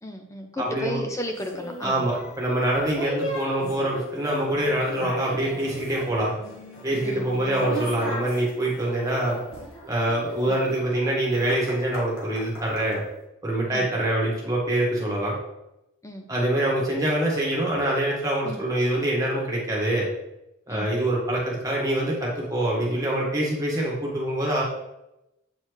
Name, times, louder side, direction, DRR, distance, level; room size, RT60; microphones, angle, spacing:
voice 1, 0.0-2.1 7.0-7.3 13.7-13.9 16.0-16.3 18.4-18.6 20.7-20.9, equal, 15° left, 4 dB, 0.6 m, -34 dB
voice 2, 0.6-1.0 1.8-6.3 6.8-9.4 9.9-13.0 13.4-15.4 16.3-20.1 20.7-24.6, right 1 dB, 15° right, -4 dB, 1.6 m, -25 dB
sound 1, 1.4-13.0, equal, 85° left, 2.0 m, -37 dB
7.8 x 4.3 x 3.2 m, 0.89 s
head